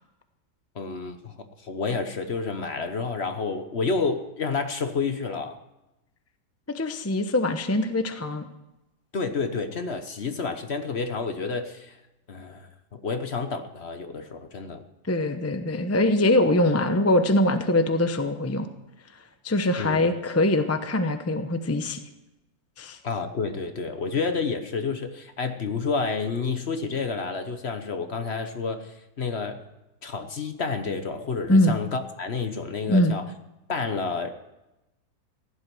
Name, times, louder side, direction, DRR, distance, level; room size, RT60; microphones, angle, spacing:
voice 1, 0.7-1.4 1.6-5.6 9.1-12.0 12.3-12.7 13.0-14.8 19.8-20.0 23.0-29.6 30.0-33.2 33.7-34.3, left 4 dB, 45° left, 8 dB, 1.1 m, -29 dB
voice 2, 6.7-8.4 15.1-18.7 19.4-22.0 22.8-23.0 31.5-31.8 32.9-33.2, left 1 dB, 15° left, 8 dB, 0.5 m, -23 dB
16.0 x 11.0 x 6.1 m, 0.95 s
omnidirectional pair, 1.9 m